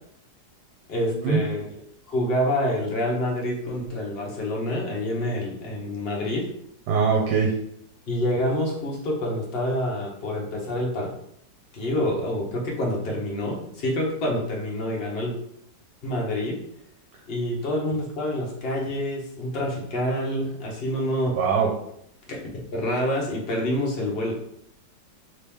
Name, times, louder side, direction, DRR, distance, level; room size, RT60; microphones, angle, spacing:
voice 1, 0.9-1.6 2.1-6.4 8.1-11.1 11.7-15.3 16.0-16.6 17.3-21.3 22.3-22.4 22.7-24.4, left 1 dB, 45° left, -2 dB, 0.8 m, -27 dB
voice 2, 6.9-7.5 21.3-21.7, right 6 dB, 75° right, 0 dB, 1.2 m, -22 dB
3.0 x 2.9 x 3.4 m, 0.73 s
omnidirectional pair, 1.9 m